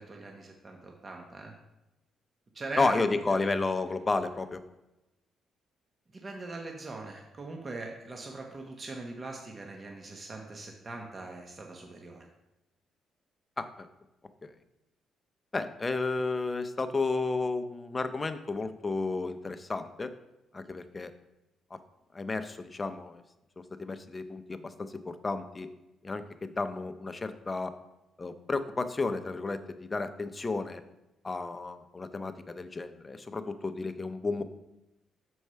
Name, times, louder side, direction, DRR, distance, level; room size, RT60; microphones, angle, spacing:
voice 1, 0.0-1.5 2.5-3.5 6.1-12.3, right 2 dB, 35° right, 1 dB, 1.0 m, -41 dB
voice 2, 2.8-4.6 13.6-13.9 14.4-14.5 15.5-20.1 20.5-21.1 22.1-23.2 23.8-25.7 26.0-27.7 28.2-30.8 31.2-34.4, left 3 dB, 25° left, 10 dB, 0.6 m, -32 dB
6.3 x 4.6 x 5.6 m, 0.94 s
cardioid pair, 90°, 0 cm